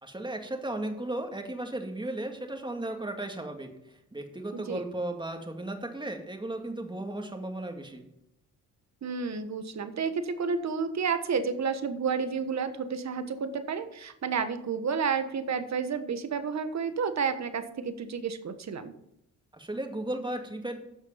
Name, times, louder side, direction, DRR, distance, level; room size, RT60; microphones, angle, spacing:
voice 1, 0.0-3.7 4.1-8.0 19.5-20.8, right 1 dB, 15° right, 4 dB, 2.1 m, -35 dB
voice 2, 4.5-4.8 9.0-18.9, right 5 dB, 50° right, 10 dB, 1.4 m, -31 dB
10.5 x 6.4 x 5.7 m, 0.78 s
supercardioid pair, 60°, 34 cm